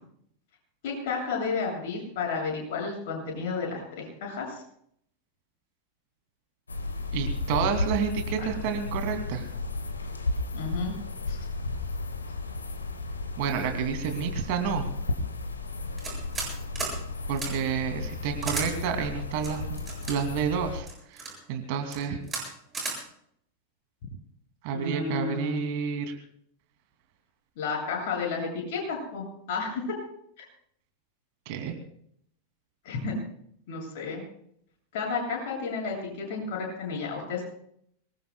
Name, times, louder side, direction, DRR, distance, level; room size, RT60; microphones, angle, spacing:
voice 1, 0.8-4.6 10.5-10.9 11.3-11.4 24.7-25.6 27.6-29.8 30.4-30.5 32.8-33.2 33.7-34.2 34.9-37.4, left 4 dB, 50° left, 0 dB, 7.7 m, -32 dB
sound 1, 6.7-20.8, left 3 dB, 75° left, 1.7 m, -33 dB
voice 2, 7.1-9.5 13.4-14.9 17.3-20.9 21.1-22.2 24.6-26.1 31.5-31.7, right 7 dB, 45° right, 5 dB, 2.7 m, -30 dB
sound 2, 16.0-16.5 16.8-16.9 17.4-17.5 18.4-18.7 19.4-20.1 20.9-21.3 21.8-22.0 22.3-22.4 22.7-23.0, right 4 dB, 15° right, 7.4 m, -33 dB
24.5 x 21.0 x 2.3 m, 0.67 s
figure-of-eight pair, 90°, 0 cm